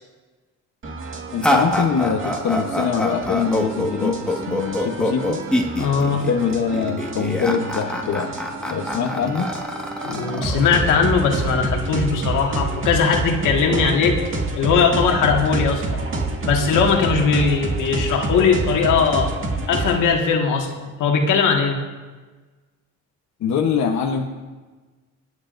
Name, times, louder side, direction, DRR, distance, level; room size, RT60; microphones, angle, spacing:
sound 1, 0.8-20.0, right 2 dB, 45° right, 2.0 m, -28 dB
voice 1, 1.3-5.4 6.1-8.3 8.7-9.5 23.4-24.3, left 6 dB, 70° left, 1 dB, 1.1 m, -23 dB
sound 2, 1.4-11.3, left 1 dB, 5° left, 1.7 m, -25 dB
voice 2, 5.8-6.2 10.0-14.2 14.6-16.0 16.4-19.3 19.7-21.8, left 5 dB, 85° left, 1 dB, 1.9 m, -19 dB
26.0 x 9.6 x 2.6 m, 1.3 s
cardioid pair, 90°, 30 cm